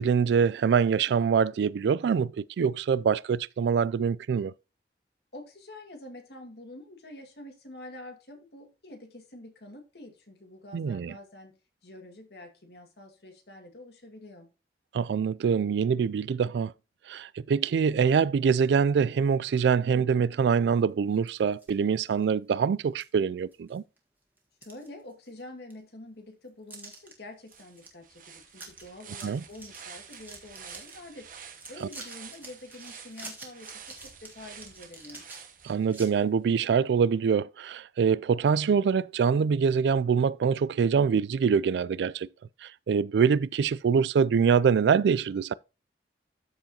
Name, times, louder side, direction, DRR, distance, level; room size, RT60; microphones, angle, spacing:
voice 1, 0.0-4.5 10.7-11.1 14.9-16.7 17.1-23.8 29.2-29.4 31.8-31.9 35.6-42.3 42.6-45.5, right 6 dB, 80° right, 0.3 m, -24 dB
voice 2, 5.3-11.6 11.8-14.5 24.6-31.3 31.7-35.2, left 1 dB, 70° left, 2.0 m, -47 dB
sound 1, 21.1-21.7 22.2-22.3 23.0-23.1 23.5-24.0 24.4-25.4 25.7-25.8 26.7-27.1 27.5-27.9 28.2-28.3 28.5-28.8 29.1-31.0 31.4-36.1, right 2 dB, 10° right, 1.6 m, -47 dB
sound 2, 27.1-27.2 27.5-36.2, right 7 dB, 50° right, 1.0 m, -49 dB
13.0 x 4.7 x 2.9 m
head